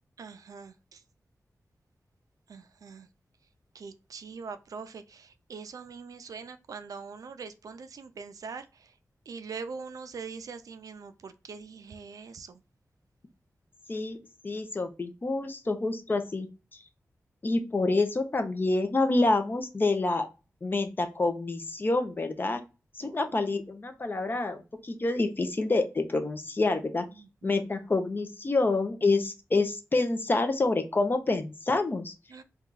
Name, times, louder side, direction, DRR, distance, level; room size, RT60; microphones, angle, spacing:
voice 1, 0.2-1.0 2.5-3.1 3.7-9.0 9.3-12.6 23.0-23.5 27.1-27.6 32.3-32.4, right 5 dB, 85° right, 0.4 m, -43 dB
voice 2, 14.4-16.5 17.4-20.3 20.6-22.6 23.0-27.1 27.4-32.1, left 2 dB, 35° left, 0.6 m, -27 dB
2.8 x 2.3 x 3.8 m
wide cardioid pair, 115°, 6 cm